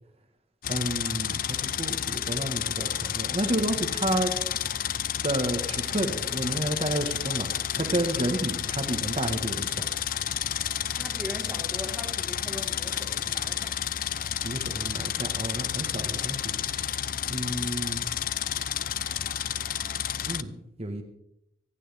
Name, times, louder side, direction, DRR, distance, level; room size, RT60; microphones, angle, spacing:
sound 1, 0.6-20.4, left 10 dB, 50° left, 0.5 m, -31 dB
voice 1, 0.7-4.3 5.2-7.5 7.8-9.8 14.4-16.6 17.3-18.0 20.2-20.5 20.8-21.0, right 1 dB, 35° right, 1.5 m, -30 dB
voice 2, 10.9-13.8, equal, 5° right, 1.8 m, -40 dB
25.0 x 12.0 x 3.5 m
head